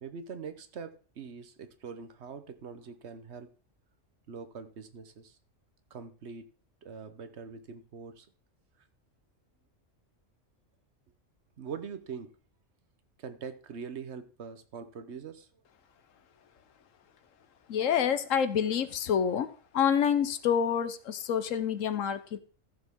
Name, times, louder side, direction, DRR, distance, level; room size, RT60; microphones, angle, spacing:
voice 1, 0.0-3.5 4.3-5.4 5.9-6.5 6.8-8.3 11.6-12.3 13.2-15.5, right 6 dB, 60° right, 1.2 m, -43 dB
voice 2, 17.7-19.5 19.7-22.4, left 8 dB, 80° left, 1.2 m, -27 dB
14.5 x 6.9 x 3.6 m
omnidirectional pair, 1.3 m